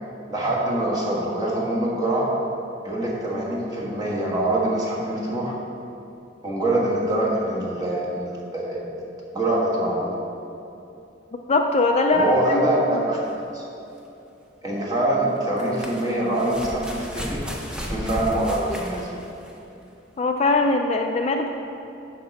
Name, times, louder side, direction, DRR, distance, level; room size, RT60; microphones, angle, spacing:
voice 1, 0.3-2.3 2.8-5.5 6.4-8.9 9.3-10.1 12.1-13.6 14.6-17.4 17.8-19.1, right 1 dB, 20° right, -5 dB, 1.5 m, -24 dB
voice 2, 11.5-13.1 20.2-21.5, left 3 dB, 35° left, 4 dB, 0.4 m, -21 dB
sound 1, 13.3-13.4 15.4-19.6 20.6-20.7, equal, 5° right, 0.7 m, -33 dB
9.3 x 6.1 x 4.1 m, 2.8 s
head